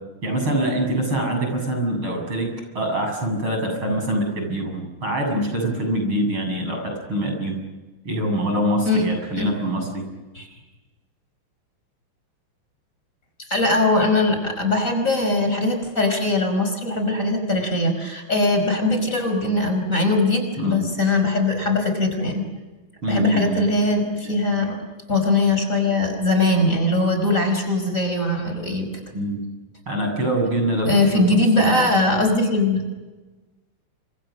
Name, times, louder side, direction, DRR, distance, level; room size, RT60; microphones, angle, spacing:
voice 1, 0.2-7.6 8.0-10.0 20.6-20.9 23.0-23.6 29.1-29.4 29.9-30.9 31.6-31.9, right 1 dB, 70° right, 3 dB, 8.5 m, -24 dB
voice 2, 13.5-22.4 23.1-24.8 25.1-29.0 30.9-32.8, left 2 dB, 35° left, 5 dB, 5.8 m, -21 dB
29.5 x 26.5 x 6.5 m, 1.2 s
omnidirectional pair, 2.4 m